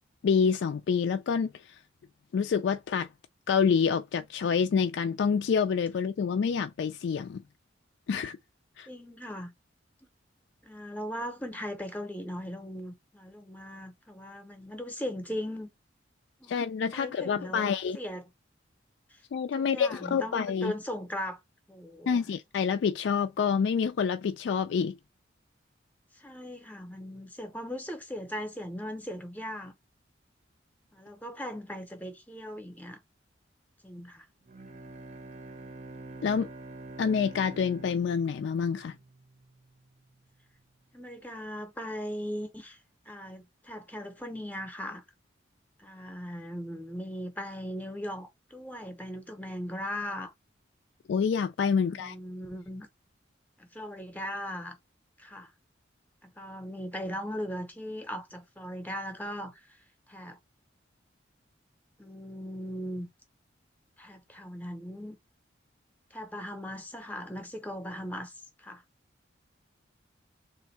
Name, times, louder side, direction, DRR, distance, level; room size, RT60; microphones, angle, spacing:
voice 1, 0.2-1.8 2.3-3.1 3.5-7.4 8.1-8.4 8.8-8.9 16.5-18.0 19.3-20.7 22.1-25.0 36.2-36.5 37.0-39.0 51.1-52.2, left 6 dB, 70° left, 0.3 m, -27 dB
voice 2, 8.9-9.5 10.6-15.7 16.4-16.5 16.9-18.3 19.1-19.2 19.5-21.4 21.7-22.3 26.1-29.7 30.9-33.0 33.8-34.3 40.9-42.8 43.1-45.0 45.8-50.3 51.8-52.9 53.6-54.8 55.2-55.5 56.2-59.7 60.1-60.4 62.0-63.1 64.0-65.2 66.1-68.3 68.6-68.8, equal, 10° left, 0.7 m, -38 dB
Bowed string instrument, 34.5-39.5, right 2 dB, 40° right, 0.6 m, -46 dB
3.5 x 2.5 x 4.1 m
head